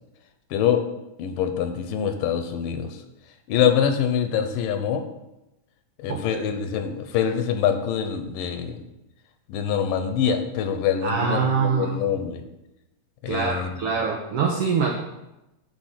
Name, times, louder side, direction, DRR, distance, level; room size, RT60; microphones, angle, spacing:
voice 1, 0.5-0.8 1.2-2.9 3.5-5.0 6.0-8.8 9.5-12.4 13.2-13.7, left 8 dB, 85° left, 7 dB, 2.5 m, -24 dB
voice 2, 6.1-6.4 11.0-12.1 13.3-15.0, right 5 dB, 90° right, 0 dB, 1.3 m, -24 dB
9.8 x 3.7 x 6.5 m, 0.94 s
omnidirectional pair, 3.8 m